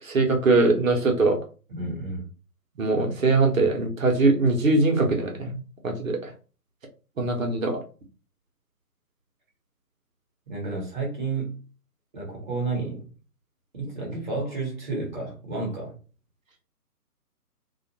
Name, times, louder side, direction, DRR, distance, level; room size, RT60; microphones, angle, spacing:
voice 1, 0.0-1.4 2.8-5.6 5.8-6.3 7.2-7.8, right 3 dB, 55° right, 3 dB, 0.8 m, -22 dB
voice 2, 1.7-2.3 10.5-11.6 12.1-13.1 13.7-16.0, right 3 dB, 30° right, -2 dB, 0.9 m, -31 dB
2.4 x 2.2 x 2.7 m, 0.36 s
figure-of-eight pair, 145°, 47 cm